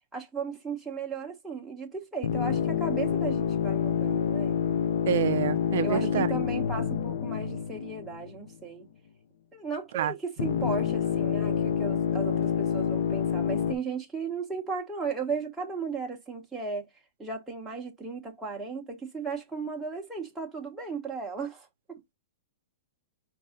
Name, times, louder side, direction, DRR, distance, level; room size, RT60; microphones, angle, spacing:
voice 1, 0.1-4.6 5.8-8.9 9.5-16.9 17.2-22.0, right 5 dB, 5° right, 0.9 m, -36 dB
sound 1, 2.2-8.5 10.4-13.7, left 8 dB, 55° left, 0.6 m, -27 dB
voice 2, 5.1-6.3 9.9-10.1, right 11 dB, 55° right, 0.3 m, -27 dB
5.4 x 2.6 x 3.7 m
supercardioid pair, 175°, 0 cm